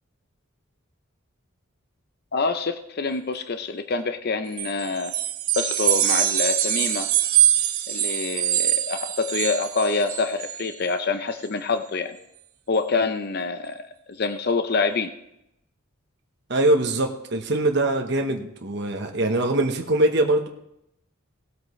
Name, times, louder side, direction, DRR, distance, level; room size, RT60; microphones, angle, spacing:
voice 1, 2.3-5.1 5.6-7.1 7.9-12.2 12.7-13.8 14.2-15.1, left 4 dB, 45° left, 9 dB, 0.6 m, -26 dB
sound 1, 4.5-10.7, right 12 dB, 85° right, 1.1 m, -23 dB
voice 2, 16.5-20.5, right 2 dB, 50° right, 3 dB, 1.0 m, -22 dB
18.0 x 8.1 x 3.1 m, 0.81 s
head